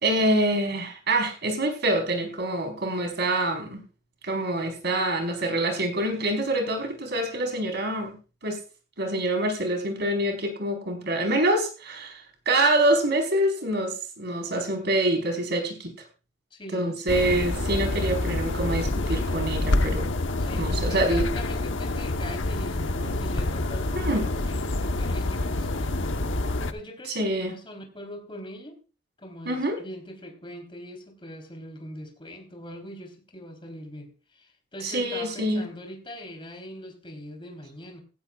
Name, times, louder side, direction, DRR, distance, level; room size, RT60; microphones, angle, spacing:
voice 1, 0.0-3.8 4.2-8.2 8.4-8.6 9.0-15.9 16.7-20.1 20.5-21.3 23.9-24.3 27.1-27.5 29.4-29.8 34.8-35.7, right 1 dB, 60° right, 4 dB, 4.5 m, -26 dB
voice 2, 16.5-17.0 20.4-28.8 29.2-38.0, equal, 25° left, 4 dB, 3.8 m, -42 dB
sound 1, 17.1-26.7, left 2 dB, 85° left, 1.1 m, -27 dB
17.0 x 15.5 x 2.4 m, 0.34 s
head